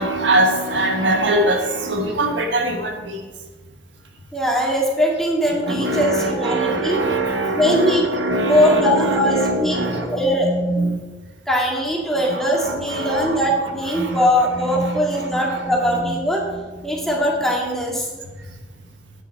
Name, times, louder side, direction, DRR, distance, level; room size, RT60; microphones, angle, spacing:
voice 1, 0.0-3.2 5.6-11.0 12.3-13.4 13.9-14.3 14.7-15.6 16.0-16.1, right 1 dB, 90° right, 3 dB, 1.6 m, -22 dB
voice 2, 4.3-7.0 7.6-8.1 8.4-9.8 10.1-10.6 11.5-16.4 16.8-18.1, equal, ahead, -3 dB, 2.1 m, -20 dB
10.0 x 9.6 x 4.3 m, 1.3 s
head